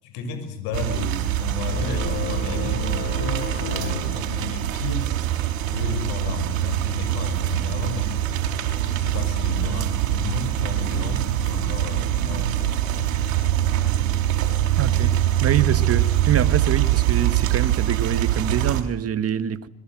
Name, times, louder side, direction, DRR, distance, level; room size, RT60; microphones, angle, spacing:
voice 1, 0.0-5.1 5.7-8.2 8.9-12.8, left 5 dB, 70° left, 7.0 m, -33 dB
sound 1, 0.7-18.8, right 12 dB, 85° right, 4.8 m, -23 dB
sound 2, 1.6-5.0, left 5 dB, 30° left, 7.4 m, -33 dB
voice 2, 14.8-19.7, right 9 dB, 35° right, 2.1 m, -25 dB
26.5 x 22.5 x 7.9 m
supercardioid pair, 95°, 39 cm